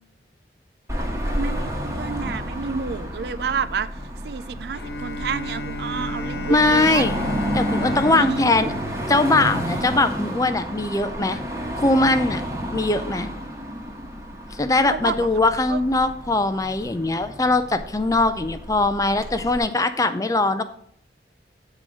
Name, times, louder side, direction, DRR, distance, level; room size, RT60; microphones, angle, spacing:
Car passing by / Traffic noise roadway noise / Engine, 0.9-19.6, equal, 15° right, 1.2 m, -31 dB
voice 1, 1.3-3.9 4.2-7.0 8.1-8.4 14.9-15.3 15.7-15.8, right 6 dB, 65° right, 0.4 m, -29 dB
Bowed string instrument, 4.7-10.2, left 1 dB, 65° left, 1.1 m, -33 dB
voice 2, 6.5-7.2 7.5-8.7 9.1-11.4 11.8-12.4 12.7-13.3 14.6-20.6, left 2 dB, 20° left, 0.5 m, -21 dB
9.2 x 3.8 x 6.2 m
head